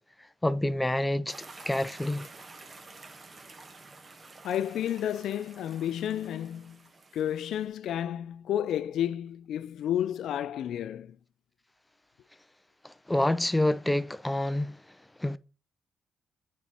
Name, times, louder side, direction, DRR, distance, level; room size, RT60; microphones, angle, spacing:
voice 1, 0.4-1.4 1.7-2.3 12.8-14.8 15.2-15.4, left 1 dB, 10° left, 0.5 m, -27 dB
sound 1, 1.3-7.7, right 3 dB, 35° right, 1.1 m, -50 dB
voice 2, 4.4-6.8 7.1-11.2, left 10 dB, 75° left, 0.4 m, -31 dB
8.4 x 4.1 x 4.3 m
cardioid pair, 90°, 0 cm